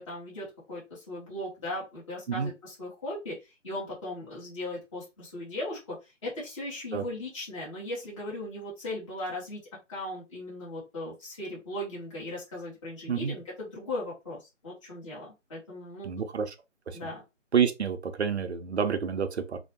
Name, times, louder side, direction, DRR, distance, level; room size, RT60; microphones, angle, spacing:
voice 1, 0.0-3.3 3.6-6.0 6.2-9.6 9.9-16.1 16.9-17.2, left 1 dB, 25° left, 1.1 m, -38 dB
voice 2, 16.0-16.5 16.9-17.0 17.5-19.6, right 7 dB, 60° right, 0.6 m, -28 dB
2.6 x 2.1 x 2.8 m
figure-of-eight pair, 165°, 38 cm